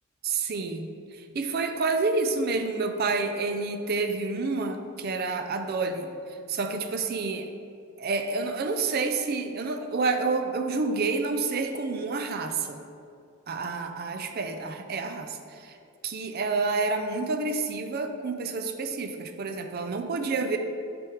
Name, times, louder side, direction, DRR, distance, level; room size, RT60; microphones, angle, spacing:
voice 1, 0.2-7.5 8.0-12.8 13.5-15.8 16.0-20.6, right 3 dB, 45° right, 6 dB, 0.4 m, -29 dB
6.4 x 3.5 x 4.5 m, 2.5 s
head